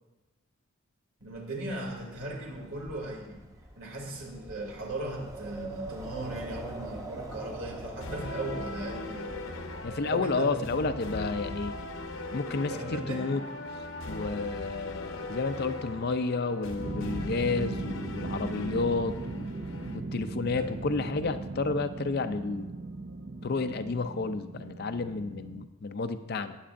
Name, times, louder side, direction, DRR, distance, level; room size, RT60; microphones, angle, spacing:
voice 1, 1.2-3.4 3.8-9.3 10.0-10.8 12.7-13.3 20.5-20.7, right 1 dB, 75° right, -2 dB, 2.6 m, -37 dB
Wind, 1.3-11.4, right 2 dB, 15° right, 0.8 m, -44 dB
sound 1, 8.0-20.0, left 2 dB, 70° left, 0.9 m, -40 dB
voice 2, 9.8-11.7 12.3-13.4 14.1-19.5 19.9-22.7 23.4-26.6, left 3 dB, 50° left, 10 dB, 0.5 m, -31 dB
sound 2, 16.8-25.7, right 3 dB, 45° right, 0.6 m, -38 dB
18.5 x 8.0 x 2.6 m, 1.1 s
head